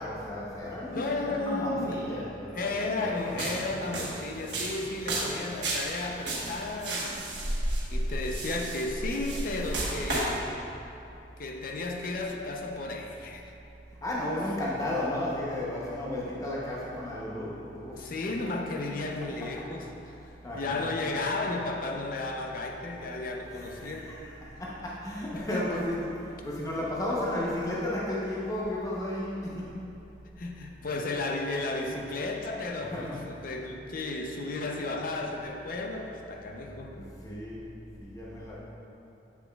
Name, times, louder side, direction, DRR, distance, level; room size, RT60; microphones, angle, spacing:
voice 1, 0.0-3.9 5.1-5.6 14.0-18.1 20.4-20.9 23.4-29.7 31.9-32.0 32.8-33.2 36.9-37.7 38.0-38.6, left 1 dB, 20° left, -6 dB, 0.8 m, -34 dB
voice 2, 0.9-2.1 2.5-10.5 11.4-13.5 18.0-19.9 20.5-24.2 25.4-25.8 30.4-37.0, left 2 dB, 55° left, 2 dB, 0.6 m, -34 dB
sound 1, 3.3-10.4, right 1 dB, 70° right, 1.2 m, -32 dB
7.3 x 7.0 x 2.3 m, 2.8 s
head